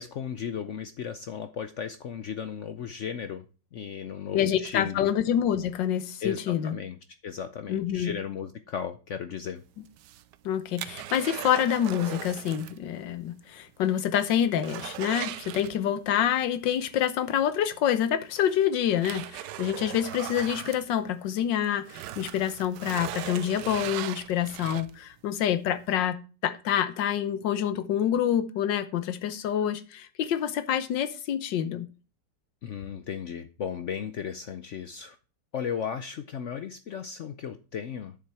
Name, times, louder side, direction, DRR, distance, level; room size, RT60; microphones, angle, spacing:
voice 1, 0.0-3.4 3.7-5.1 6.2-7.0 7.2-9.6 32.6-35.2 35.5-38.2, left 7 dB, 65° left, 0.7 m, -35 dB
voice 2, 4.3-6.7 7.7-8.1 10.4-31.9, left 10 dB, 85° left, 1.6 m, -27 dB
sound 1, 9.9-12.8 13.1-13.2 13.7-13.8 14.1-16.2 17.6-17.7 18.3-21.5 21.8-25.1 25.7-25.8, right 12 dB, 80° right, 1.2 m, -39 dB
8.7 x 7.3 x 4.7 m
omnidirectional pair, 1.9 m